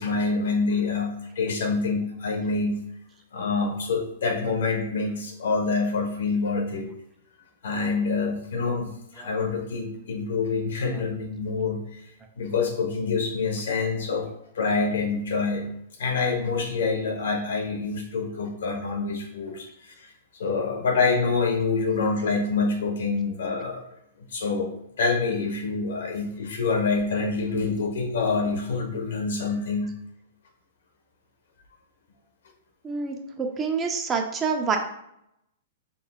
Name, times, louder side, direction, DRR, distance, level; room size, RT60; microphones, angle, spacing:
voice 1, 0.0-2.8 3.3-6.9 7.6-12.0 12.4-14.3 14.5-15.7 16.0-20.1 20.4-23.8 24.3-24.7 25.0-29.9, left 4 dB, 80° left, 4 dB, 1.1 m, -26 dB
voice 2, 32.8-34.8, right 5 dB, 15° right, 3 dB, 0.5 m, -27 dB
5.4 x 3.7 x 2.3 m, 0.78 s
hypercardioid pair, 155°, 0 cm